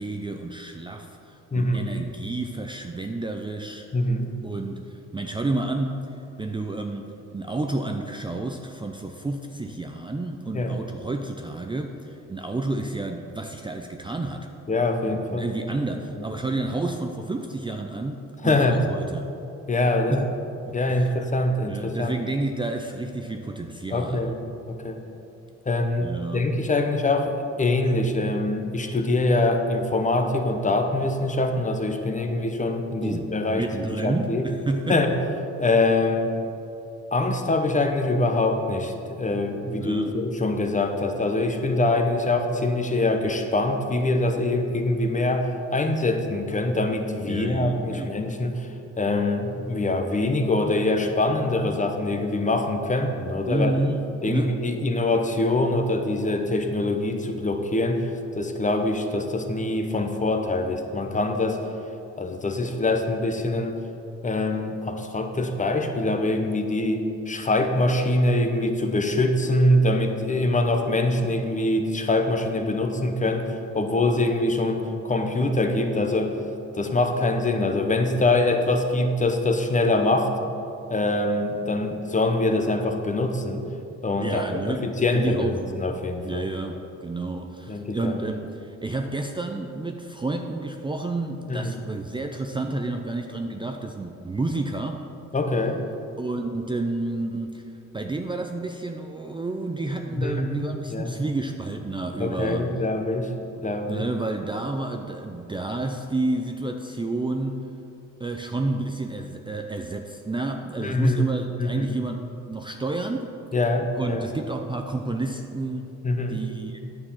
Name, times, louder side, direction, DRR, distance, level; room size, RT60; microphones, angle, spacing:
voice 1, 0.0-3.9 4.4-14.5 15.0-19.3 20.1-20.3 20.7-21.1 21.7-24.3 26.0-26.5 33.0-35.0 39.7-40.2 47.2-48.1 53.4-54.5 84.2-84.9 85.1-85.6 86.2-95.1 96.2-97.6 97.9-102.7 103.9-107.7 108.2-113.3 114.0-115.9 116.3-116.8, right 2 dB, 15° right, 4 dB, 0.5 m, -30 dB
voice 2, 1.5-1.9 3.9-4.3 10.5-10.8 14.7-15.5 15.9-16.3 18.4-18.8 19.7-20.3 20.7-22.1 23.9-24.3 24.7-25.0 25.7-34.5 34.9-35.1 35.6-36.3 37.1-48.7 49.0-53.8 54.2-61.6 62.2-63.8 64.2-76.4 76.7-80.3 80.9-83.7 84.0-86.5 87.7-88.2 91.5-91.8 95.3-95.8 100.1-101.2 102.2-103.3 103.6-104.1 110.8-111.3 111.6-112.0 113.5-114.3 116.0-116.4, left 2 dB, 25° left, 5 dB, 0.9 m, -24 dB
9.7 x 6.6 x 5.7 m, 2.8 s
cardioid pair, 90°, 30 cm